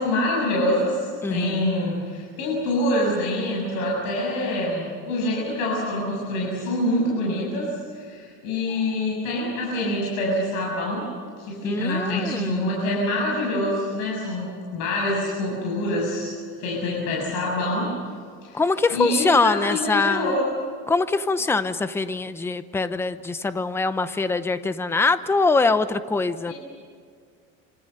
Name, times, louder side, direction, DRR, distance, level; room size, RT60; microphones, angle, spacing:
voice 1, 0.0-11.1 11.4-17.9 18.4-18.6 18.9-20.5 26.5-26.6, left 1 dB, 65° left, -3 dB, 7.8 m, -26 dB
voice 2, 1.2-1.7 11.6-12.8 16.8-17.0 18.5-20.3 20.9-26.5, left 3 dB, 10° left, 11 dB, 0.8 m, -23 dB
28.5 x 26.5 x 6.8 m, 2.1 s
cardioid pair, 155°, 30 cm